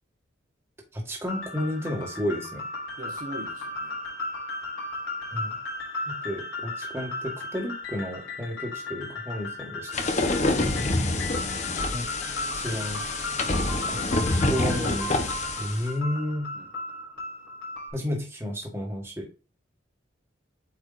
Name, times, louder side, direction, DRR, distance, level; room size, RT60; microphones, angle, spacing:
voice 1, 0.9-2.6 5.3-5.6 6.0-10.3 11.9-12.1 12.5-13.0 13.9-14.0 14.5-15.2 15.6-16.5 17.9-19.3, equal, 15° right, 0 dB, 1.7 m, -32 dB
sound 1, 1.3-17.9, left 2 dB, 80° left, 3.7 m, -35 dB
voice 2, 3.0-4.0 10.3-11.0 12.7-12.9 16.5-16.7, right 1 dB, 45° right, 1 dB, 1.3 m, -41 dB
sound 2, 9.9-15.8, left 2 dB, 35° left, 0.9 m, -27 dB
8.1 x 4.8 x 2.5 m, 0.33 s
head